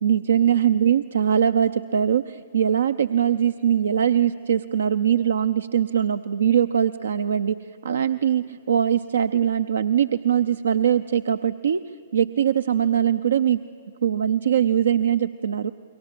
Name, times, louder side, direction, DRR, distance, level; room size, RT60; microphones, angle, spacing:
voice 1, 0.0-11.8 12.1-13.6 14.0-15.7, right 9 dB, 70° right, 12 dB, 0.6 m, -21 dB
28.5 x 23.0 x 7.5 m, 2.5 s
figure-of-eight pair, 115°, 0 cm